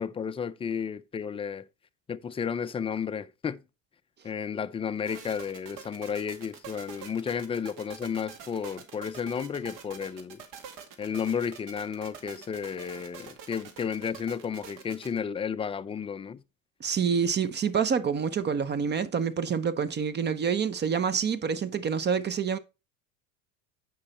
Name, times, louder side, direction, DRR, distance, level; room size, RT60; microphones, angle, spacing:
voice 1, 0.0-1.7 2.1-3.6 4.2-10.4 11.0-16.4, left 7 dB, 15° left, 0.4 m, -32 dB
sound 1, 5.1-15.2, right 7 dB, 55° right, 2.0 m, -46 dB
voice 2, 16.8-22.6, right 6 dB, 25° right, 0.8 m, -27 dB
8.8 x 5.5 x 4.2 m
supercardioid pair, 105°, 38 cm